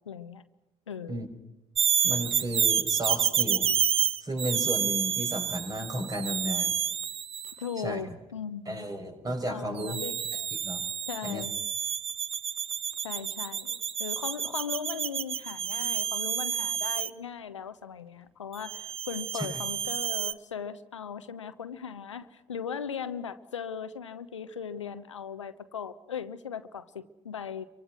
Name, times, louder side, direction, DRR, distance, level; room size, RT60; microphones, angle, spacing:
voice 1, 0.1-0.4 0.9-1.3 7.6-8.8 9.5-10.5 11.1-11.5 13.0-27.6, left 7 dB, 85° left, 12 dB, 1.0 m, -38 dB
sound 1, 1.8-7.6 9.8-17.1 18.6-20.3, right 8 dB, 40° right, 1.1 m, -29 dB
voice 2, 2.0-3.7 4.2-6.7 7.8-8.0 8.7-10.0 10.6-10.8 11.2-11.4 19.3-19.6, right 1 dB, 25° right, 5 dB, 6.2 m, -33 dB
29.5 x 24.0 x 6.2 m, 0.95 s
figure-of-eight pair, 55°, 15 cm